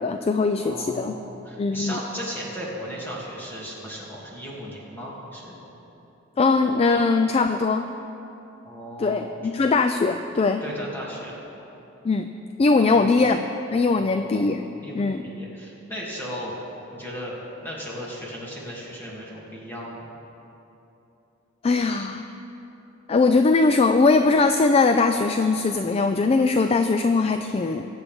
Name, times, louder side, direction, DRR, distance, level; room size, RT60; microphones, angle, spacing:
voice 1, 0.0-1.2 1.6-2.0 6.4-7.9 9.0-10.6 12.0-12.3 12.6-13.4 13.7-14.7 14.9-15.2 21.6-22.3 23.1-27.8, left 3 dB, 30° left, 7 dB, 0.3 m, -20 dB
voice 2, 0.6-5.6 8.6-9.4 10.6-11.3 12.8-13.1 13.9-14.5 14.8-16.5 16.9-20.0, equal, 10° left, -6 dB, 2.6 m, -36 dB
22.0 x 8.3 x 3.6 m, 3.0 s
head